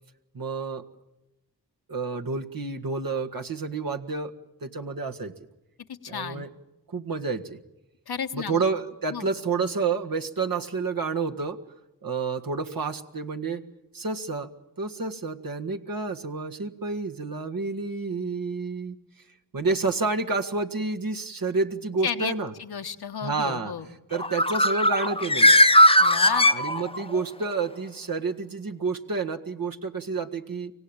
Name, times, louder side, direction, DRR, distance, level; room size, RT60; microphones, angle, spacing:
voice 1, 0.3-0.8 1.9-4.3 4.6-5.3 6.1-6.5 6.9-7.6 8.3-11.6 12.0-13.6 13.9-14.5 14.8-19.0 19.5-22.5 23.2-23.7 24.1-25.6 26.5-30.7, right 4 dB, 60° right, 4 dB, 1.7 m, -29 dB
voice 2, 6.0-6.4 8.1-8.7 9.1-9.3 22.0-22.3 22.6-23.8 26.0-26.5, left 7 dB, 80° left, 7 dB, 1.2 m, -32 dB
Bird, 24.1-27.2, left 1 dB, 15° left, 0.8 m, -18 dB
25.0 x 17.0 x 8.8 m, 0.98 s
cardioid pair, 40°, 38 cm